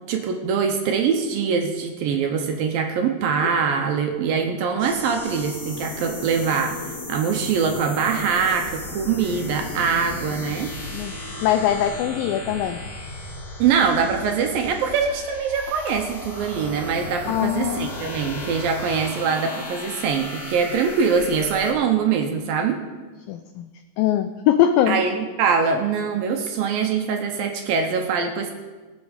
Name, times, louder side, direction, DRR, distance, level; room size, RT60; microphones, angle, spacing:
voice 1, 0.1-10.7 13.6-22.8 24.9-28.5, right 6 dB, 75° right, 4 dB, 2.4 m, -23 dB
sound 1, 4.8-21.7, left 2 dB, 55° left, 3.2 m, -35 dB
voice 2, 11.4-12.8 17.3-17.9 23.3-23.7 24.0-25.0, left 11 dB, 90° left, 8 dB, 2.0 m, -21 dB
19.0 x 7.3 x 5.1 m, 1.3 s
omnidirectional pair, 4.7 m